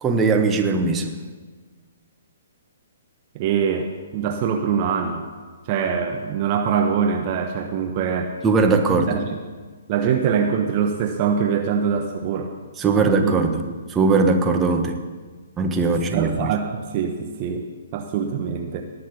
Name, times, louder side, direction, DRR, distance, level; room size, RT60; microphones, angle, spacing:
voice 1, 0.0-1.1 8.4-9.2 12.8-13.6 13.9-15.0 15.6-16.5, right 4 dB, 15° right, 4 dB, 1.4 m, -19 dB
voice 2, 3.3-5.2 5.7-8.3 9.1-9.2 9.9-12.5 12.9-13.4 13.6-13.8 16.0-17.7 17.9-18.8, right 7 dB, 35° right, 4 dB, 1.1 m, -23 dB
19.0 x 6.6 x 7.0 m, 1.4 s
figure-of-eight pair, 125°, 0 cm